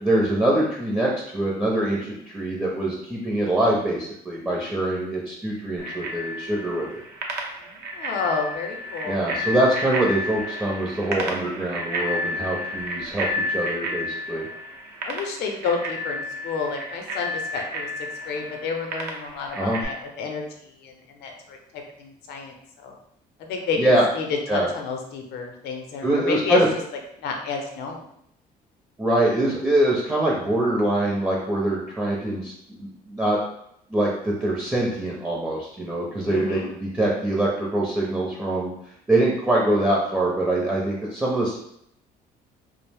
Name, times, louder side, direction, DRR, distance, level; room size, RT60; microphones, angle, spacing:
voice 1, 0.0-7.0 9.0-14.4 19.6-19.8 23.8-24.1 24.5-24.7 26.0-26.7 29.0-33.4 33.9-38.7 39.1-41.6, right 1 dB, 10° right, -4 dB, 0.5 m, -24 dB
Bicycle bell, 5.8-19.8, left 1 dB, 75° right, 0.6 m, -31 dB
voice 2, 7.6-9.3 15.1-17.9 18.3-22.9 23.4-26.6 27.2-28.0 36.2-36.7, left 5 dB, 75° left, 3 dB, 0.6 m, -30 dB
2.4 x 2.0 x 3.3 m, 0.74 s
cardioid pair, 110°, 17 cm